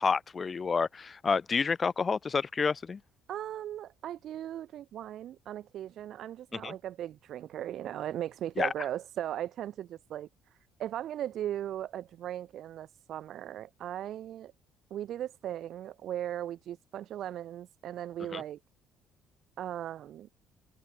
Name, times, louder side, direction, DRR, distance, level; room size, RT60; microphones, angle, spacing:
voice 1, 0.0-3.0 6.6-6.7 8.6-8.7 18.3-18.4, left 5 dB, 25° left, 5.3 m, -29 dB
voice 2, 3.3-10.3 10.8-14.5 14.9-18.6 19.6-20.3, right 11 dB, 55° right, 3.6 m, -38 dB
cardioid pair, 140°, 0 cm